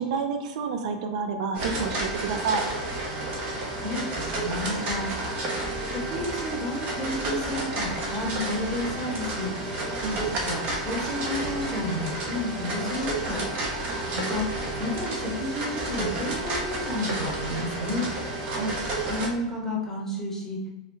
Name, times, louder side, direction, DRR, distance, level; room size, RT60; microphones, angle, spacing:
voice 1, 0.0-2.6 10.0-10.2 14.1-14.3 18.4-18.8, right 5 dB, 65° right, 6 dB, 0.4 m, -29 dB
sound 1, 1.5-19.3, right 2 dB, 35° right, 0.8 m, -31 dB
voice 2, 3.7-5.1 5.9-9.5 10.2-13.4 14.1-14.5 14.8-18.1 19.1-20.6, left 2 dB, 10° left, -2 dB, 0.9 m, -31 dB
3.2 x 2.3 x 3.0 m, 1.1 s
hypercardioid pair, 125°, 4 cm